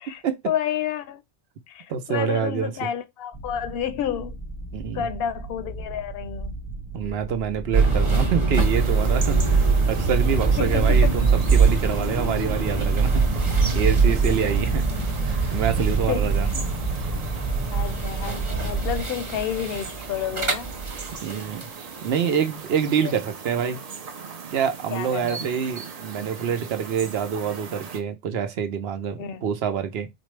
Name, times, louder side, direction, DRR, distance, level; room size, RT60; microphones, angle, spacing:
voice 1, 0.0-1.2 1.7-4.4 4.9-6.6 10.6-11.2 16.1-16.3 17.7-20.7 23.0-23.1 24.9-25.4 29.2-29.4, left 9 dB, 70° left, 0.7 m, -30 dB
voice 2, 1.9-2.7 4.7-5.1 6.9-13.2 13.7-14.9 15.5-16.6 21.2-21.7 22.0-23.8 24.5-30.1, right 7 dB, 75° right, 0.9 m, -26 dB
sound 1, 3.3-19.0, right 2 dB, 10° left, 0.5 m, -34 dB
sound 2, 7.7-21.7, right 4 dB, 30° right, 1.1 m, -23 dB
sound 3, 8.6-28.0, right 5 dB, 45° right, 0.5 m, -39 dB
4.2 x 2.0 x 3.1 m
omnidirectional pair, 1.1 m